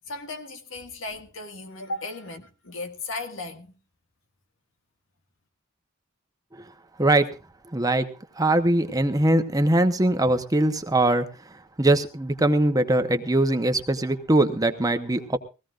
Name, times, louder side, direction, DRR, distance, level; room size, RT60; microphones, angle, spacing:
voice 1, 0.1-3.8, left 2 dB, 70° left, 1.8 m, -36 dB
voice 2, 7.7-8.1 8.4-11.2 11.8-15.4, right 1 dB, 20° right, 0.9 m, -21 dB
21.0 x 16.0 x 2.5 m
head